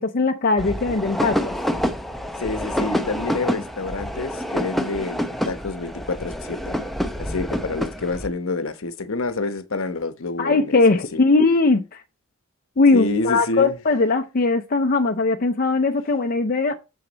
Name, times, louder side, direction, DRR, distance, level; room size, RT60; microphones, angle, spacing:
voice 1, 0.0-1.5 10.4-12.0 12.8-16.8, left 3 dB, 40° left, 0.6 m, -19 dB
sound 1, 0.6-8.3, equal, ahead, 0.7 m, -27 dB
voice 2, 2.4-6.8 7.2-11.2 12.9-13.8, left 3 dB, 65° left, 1.0 m, -28 dB
7.1 x 6.5 x 4.0 m
head